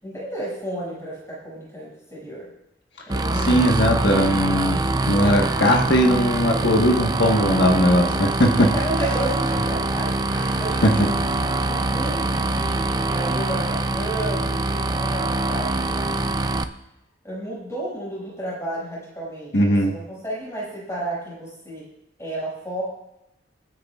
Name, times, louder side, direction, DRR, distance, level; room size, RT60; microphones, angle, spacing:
voice 1, 0.0-2.5 3.1-3.8 8.6-11.1 11.7-16.7 17.2-21.9 22.2-22.8, right 1 dB, 15° left, -6 dB, 6.1 m, -32 dB
sound 1, 3.1-16.6, right 2 dB, 20° right, 0.5 m, -24 dB
voice 2, 3.3-4.8 5.1-8.7 10.3-10.5 10.8-11.1 19.5-19.9, equal, 70° left, 0 dB, 1.4 m, -19 dB
28.5 x 9.5 x 2.4 m, 0.87 s
head